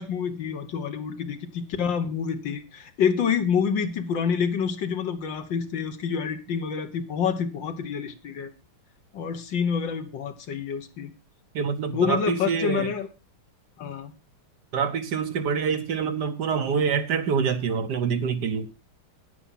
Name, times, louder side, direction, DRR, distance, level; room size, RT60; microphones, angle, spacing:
voice 1, 0.0-8.5 9.1-11.1 11.9-13.1 13.8-14.1, left 7 dB, 65° left, 1.8 m, -27 dB
voice 2, 11.5-12.9 14.7-18.7, right 6 dB, 60° right, 1.3 m, -26 dB
9.9 x 9.5 x 5.6 m
omnidirectional pair, 2.3 m